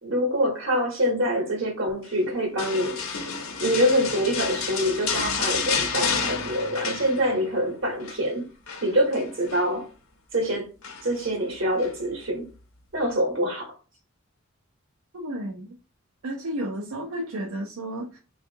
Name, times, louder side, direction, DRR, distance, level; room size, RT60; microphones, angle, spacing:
voice 1, 0.0-8.4 8.8-9.9 10.3-10.7 11.0-12.4 12.9-13.7, equal, 65° right, 1.0 m, -25 dB
sound 1, 2.6-7.6 7.8-8.2 8.7-9.7 10.8-11.3 11.8-11.9, left 5 dB, 85° left, 0.7 m, -30 dB
voice 2, 15.1-15.7 16.2-18.2, right 1 dB, 85° right, 0.6 m, -32 dB
3.4 x 2.4 x 2.7 m
head